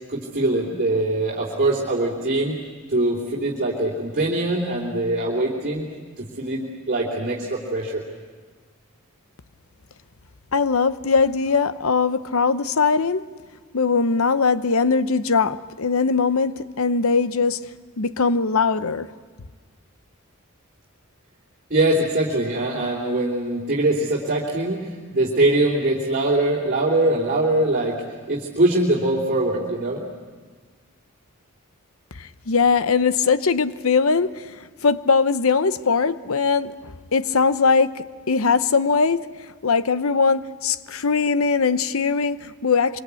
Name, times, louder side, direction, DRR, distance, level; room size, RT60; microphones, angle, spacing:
voice 1, 0.1-2.5 2.9-5.8 6.2-8.0 21.7-28.0 28.3-30.0, right 2 dB, 40° right, -5 dB, 3.3 m, -22 dB
voice 2, 10.5-13.3 13.7-17.6 18.0-19.1 32.2-39.3 39.6-43.0, left 5 dB, 70° left, 14 dB, 0.8 m, -21 dB
25.0 x 24.5 x 8.4 m, 1.5 s
head